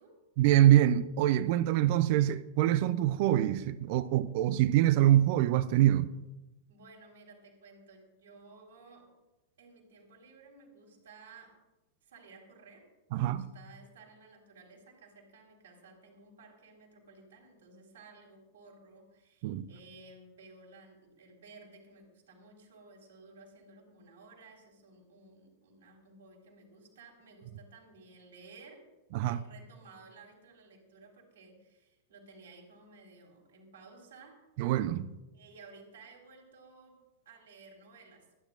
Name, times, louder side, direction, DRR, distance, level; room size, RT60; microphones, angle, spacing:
voice 1, 0.4-6.1 13.1-13.5 19.4-19.7 29.1-29.4 34.6-35.1, right 12 dB, 50° right, 0.4 m, -25 dB
voice 2, 6.7-9.1 9.6-11.6 12.0-12.9 13.1-28.8 29.2-34.4 35.3-38.3, right 3 dB, 65° right, 3.9 m, -55 dB
24.5 x 9.8 x 2.5 m
figure-of-eight pair, 90°, 0 cm